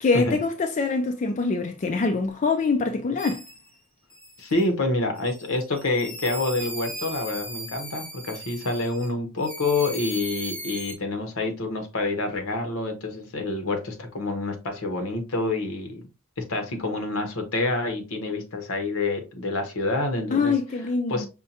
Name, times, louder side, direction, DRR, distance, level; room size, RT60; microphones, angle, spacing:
voice 1, 0.0-3.4 20.3-21.3, left 4 dB, 35° left, 0.4 m, -24 dB
sh Squeaky Balloon Air Out Multiple, 3.2-3.7 4.1-4.7 5.2-9.1 9.4-10.9, right 1 dB, 5° left, 0.8 m, -38 dB
voice 2, 4.4-16.1 16.4-20.5 21.1-21.3, left 2 dB, 75° left, 0.9 m, -27 dB
5.5 x 2.2 x 2.7 m
head